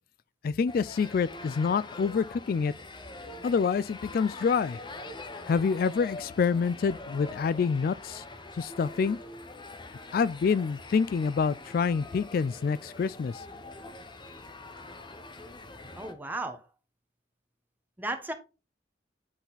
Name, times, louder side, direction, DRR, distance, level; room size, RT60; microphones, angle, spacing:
voice 1, 0.4-2.7 3.4-4.8 5.5-8.2 8.5-9.2 10.1-13.4, left 5 dB, 55° left, 0.3 m, -27 dB
sound 1, 0.7-16.1, left 2 dB, 25° left, 1.0 m, -44 dB
voice 2, 15.9-16.6 18.0-18.3, right 2 dB, 10° right, 1.3 m, -34 dB
10.5 x 4.1 x 4.0 m
head